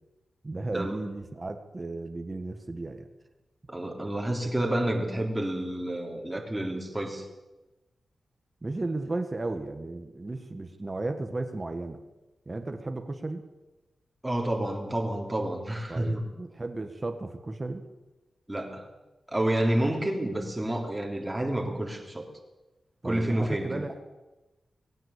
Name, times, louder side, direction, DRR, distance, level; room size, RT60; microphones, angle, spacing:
voice 1, 0.4-3.1 8.6-12.0 12.5-13.4 15.9-17.8 23.0-24.1, right 2 dB, 25° right, 6 dB, 1.8 m, -34 dB
voice 2, 3.7-7.3 14.2-16.2 18.5-18.9 19.3-22.3 23.0-23.8, right 1 dB, 10° right, 0 dB, 3.5 m, -29 dB
19.5 x 16.5 x 8.4 m, 1.1 s
wide cardioid pair, 140°, 0 cm